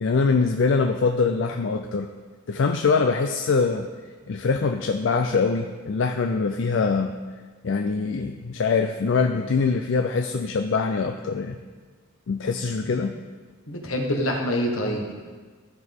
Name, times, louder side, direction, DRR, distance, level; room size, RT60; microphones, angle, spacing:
voice 1, 0.0-2.1 2.5-3.9 4.3-7.1 7.6-11.6 12.3-13.2, left 4 dB, 60° left, 5 dB, 0.4 m, -23 dB
voice 2, 13.7-15.1, equal, 80° left, 1 dB, 1.4 m, -26 dB
14.0 x 5.9 x 3.6 m, 1.5 s
head